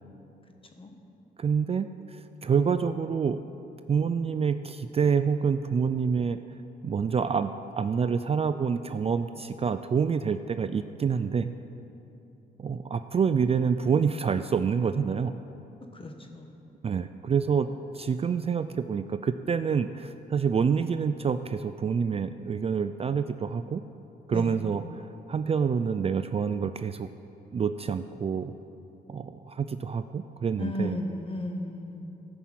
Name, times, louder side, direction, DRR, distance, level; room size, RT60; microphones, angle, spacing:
voice 1, 1.4-3.4 3.9-6.4 6.8-11.5 12.6-15.3 16.8-17.7 17.9-23.8 24.3-27.1 27.5-28.5 29.1-31.0, right 6 dB, 35° right, 10 dB, 0.4 m, -27 dB
voice 2, 15.9-16.6 24.3-24.6 30.6-32.2, left 1 dB, 30° left, 3 dB, 1.3 m, -35 dB
14.0 x 5.9 x 7.5 m, 2.9 s
cardioid pair, 90°, 18 cm